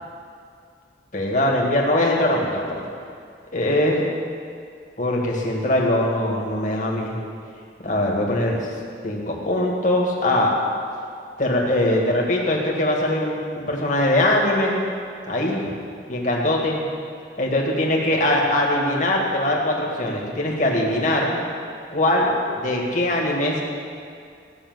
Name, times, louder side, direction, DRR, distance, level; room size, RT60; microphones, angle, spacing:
voice 1, 1.1-2.8 3.5-4.0 5.0-7.2 7.8-8.6 9.0-10.5 11.4-14.8 15.3-15.6 16.1-16.8 17.4-21.4 21.9-23.7, left 1 dB, 45° left, -2 dB, 2.0 m, -21 dB
14.5 x 6.5 x 7.9 m, 2.3 s
head